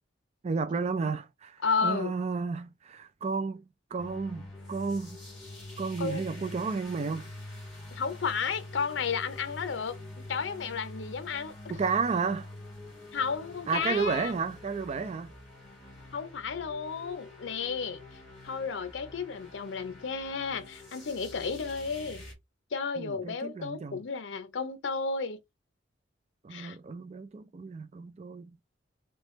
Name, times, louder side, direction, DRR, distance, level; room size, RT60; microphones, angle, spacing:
voice 1, 0.4-3.6 3.9-5.1 5.8-7.3 11.7-12.5 13.7-15.3 23.0-24.0 26.4-28.5, right 4 dB, 35° right, 0.4 m, -32 dB
voice 2, 1.6-2.1 6.0-6.2 7.9-10.0 10.3-11.5 13.1-14.3 16.1-18.0 18.4-22.2 22.7-25.4 26.5-26.8, left 5 dB, 80° left, 0.5 m, -32 dB
sound 1, 4.0-22.3, left 2 dB, ahead, 1.9 m, -46 dB
3.2 x 3.0 x 3.0 m
head